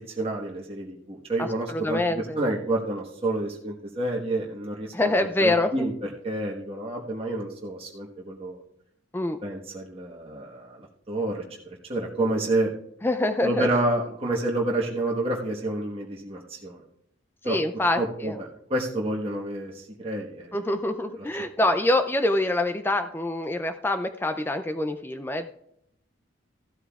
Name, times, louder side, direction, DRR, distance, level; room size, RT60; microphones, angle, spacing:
voice 1, 0.2-5.1 5.4-5.9 6.2-8.6 9.4-11.4 11.9-12.7 13.4-16.8 17.4-17.6 18.0-20.6, right 1 dB, 30° right, -3 dB, 1.3 m, -29 dB
voice 2, 1.4-2.4 4.9-5.8 9.1-9.4 13.0-13.7 17.4-18.4 20.5-25.5, left 1 dB, 10° left, 8 dB, 0.3 m, -25 dB
15.0 x 12.5 x 2.4 m, 0.75 s
head